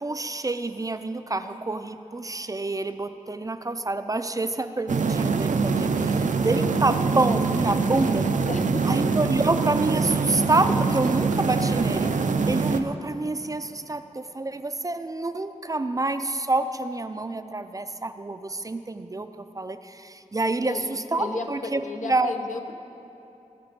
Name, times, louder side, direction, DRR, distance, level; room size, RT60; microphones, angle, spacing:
voice 1, 0.0-8.3 8.8-12.1 12.5-22.3, right 2 dB, 25° right, 10 dB, 0.4 m, -27 dB
sound 1, 4.9-12.8, right 4 dB, 75° right, 0.6 m, -24 dB
voice 2, 6.7-7.1 8.5-9.2 20.7-22.7, left 3 dB, 75° left, 5 dB, 0.9 m, -35 dB
19.0 x 6.7 x 5.2 m, 2.9 s
wide cardioid pair, 100°, 13 cm